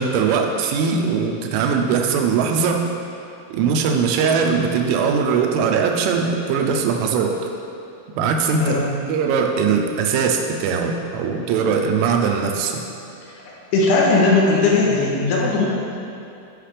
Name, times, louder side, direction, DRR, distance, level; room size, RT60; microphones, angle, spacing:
voice 1, 0.0-2.9 3.5-7.5 8.2-8.8 9.1-12.8, right 6 dB, 90° right, 3 dB, 3.1 m, -20 dB
voice 2, 8.5-8.9 13.7-15.7, left 3 dB, 75° left, -3 dB, 2.8 m, -18 dB
12.0 x 5.7 x 3.3 m, 2.7 s
omnidirectional pair, 5.5 m